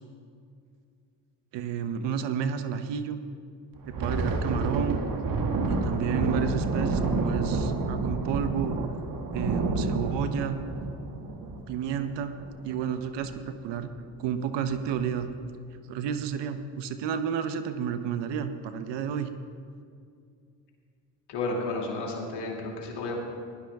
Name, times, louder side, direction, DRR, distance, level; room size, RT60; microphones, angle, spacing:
voice 1, 1.5-3.2 4.0-5.0 5.7-8.8 9.3-10.6 11.4-12.3 12.6-13.9 14.2-15.3 15.9-19.3, right 7 dB, 80° right, 10 dB, 0.8 m, -31 dB
Thunder, 3.8-12.8 13.2-13.4 13.8-14.0 14.6-15.1, right 3 dB, 50° right, 1.6 m, -29 dB
voice 2, 21.3-23.2, left 2 dB, 70° left, -1 dB, 2.6 m, -32 dB
17.0 x 11.5 x 3.5 m, 2.3 s
supercardioid pair, 75°, 42 cm